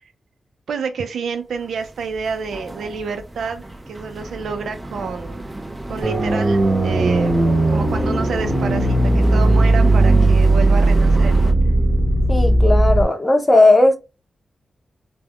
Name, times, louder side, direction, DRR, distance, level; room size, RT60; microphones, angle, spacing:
voice 1, 0.7-5.4 5.9-7.4 7.7-11.3, right 5 dB, 90° right, 0.4 m, -28 dB
sound 1, 1.5-11.5, right 1 dB, 20° right, 0.6 m, -31 dB
sound 2, 6.0-13.0, right 2 dB, 35° right, 1.3 m, -16 dB
voice 2, 12.3-14.0, left 2 dB, 25° left, 0.7 m, -15 dB
3.3 x 2.0 x 2.2 m
cardioid pair, 80°, 0 cm